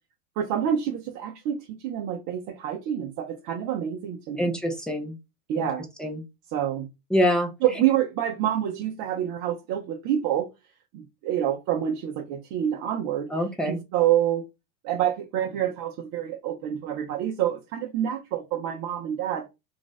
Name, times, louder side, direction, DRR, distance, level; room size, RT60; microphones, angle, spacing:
voice 1, 0.4-4.4 5.5-5.8 6.5-6.9 7.6-10.5 10.9-13.3 13.6-14.4 14.8-19.5, right 10 dB, 40° right, 0.7 m, -27 dB
voice 2, 4.4-5.2 5.6-5.7 6.0-6.2 7.1-7.5 13.3-13.8, equal, ahead, 0.6 m, -25 dB
2.6 x 2.3 x 3.9 m
hypercardioid pair, 115°, 47 cm